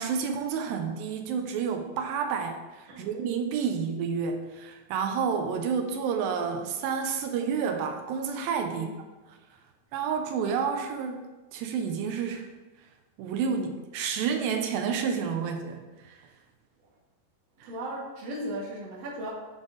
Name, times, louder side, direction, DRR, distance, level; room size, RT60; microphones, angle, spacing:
voice 1, 0.0-8.9 9.9-12.5 13.2-16.3 17.6-17.7, right 6 dB, 85° right, 5 dB, 2.3 m, -30 dB
voice 2, 17.6-19.3, right 1 dB, 60° right, -4 dB, 1.9 m, -36 dB
9.6 x 3.5 x 3.8 m, 1.2 s
omnidirectional pair, 4.2 m